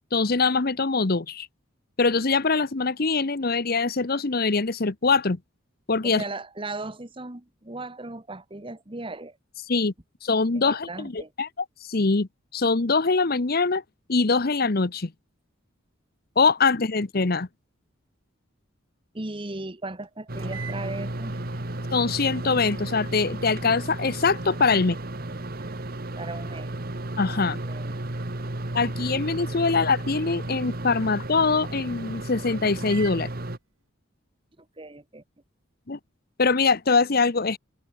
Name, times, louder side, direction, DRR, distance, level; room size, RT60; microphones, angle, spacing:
voice 1, 0.1-1.5 2.0-5.4 5.9-6.2 9.7-9.9 10.2-11.5 11.8-13.8 14.1-15.1 16.4-17.5 21.9-25.0 27.2-27.6 28.7-33.3 35.9-36.0 36.4-37.6, left 4 dB, 45° left, 0.9 m, -23 dB
voice 2, 6.0-9.4 10.5-11.3 19.1-21.3 25.6-25.7 26.2-26.7 27.6-28.2 34.6-35.2, right 2 dB, 25° right, 1.4 m, -37 dB
sound 1, 20.0-20.1 20.4-33.2, right 2 dB, 80° right, 4.1 m, -45 dB
sound 2, 20.3-33.6, right 1 dB, 45° right, 1.7 m, -34 dB
open air
head